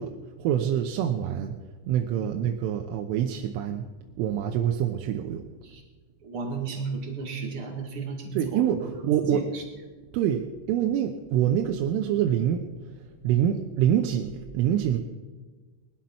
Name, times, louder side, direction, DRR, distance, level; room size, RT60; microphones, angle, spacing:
voice 1, 0.0-1.6 1.9-5.5 8.3-9.4 10.1-12.7 12.9-15.0, right 10 dB, 85° right, 4 dB, 3.4 m, -26 dB
voice 2, 6.2-8.7 9.0-9.6, right 4 dB, 65° right, 2 dB, 1.3 m, -34 dB
20.5 x 12.0 x 5.8 m, 1.4 s
omnidirectional pair, 5.7 m